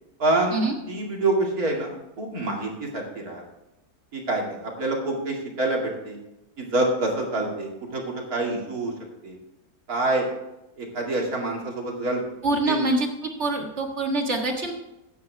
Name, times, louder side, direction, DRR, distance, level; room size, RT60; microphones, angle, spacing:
voice 1, 0.2-0.6 0.9-3.4 4.1-6.2 6.6-8.9 9.2-9.4 9.9-10.3 10.8-12.2 12.7-12.8, right 2 dB, 75° right, -1 dB, 2.9 m, -26 dB
voice 2, 12.4-14.7, right 2 dB, 50° right, 2 dB, 1.9 m, -25 dB
14.0 x 9.5 x 3.4 m, 0.93 s
omnidirectional pair, 1.6 m